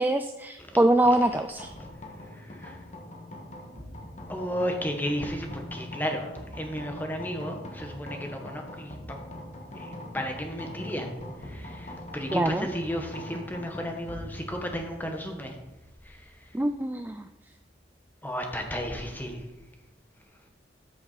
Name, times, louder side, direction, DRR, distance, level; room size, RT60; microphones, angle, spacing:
voice 1, 0.0-1.7 12.3-12.7 16.5-17.3, right 1 dB, 10° right, 8 dB, 0.3 m, -24 dB
sound 1, 1.6-18.8, left 1 dB, 40° left, 1.5 m, -43 dB
voice 2, 2.3-2.8 4.3-9.2 9.7-11.1 11.4-15.6 16.0-16.3 18.2-19.4, equal, 10° left, 3 dB, 1.3 m, -33 dB
13.5 x 6.9 x 4.1 m, 1.0 s
head